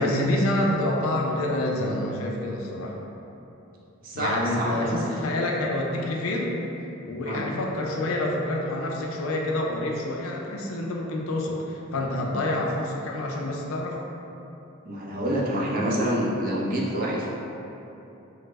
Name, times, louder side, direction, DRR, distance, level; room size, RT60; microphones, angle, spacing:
voice 1, 0.0-2.9 4.1-6.6 7.1-14.0, left 1 dB, 70° left, 0 dB, 0.4 m, -27 dB
voice 2, 4.0-5.2 7.2-7.4 14.9-17.4, right 1 dB, 45° right, -4 dB, 0.4 m, -27 dB
3.0 x 2.0 x 3.3 m, 2.9 s
head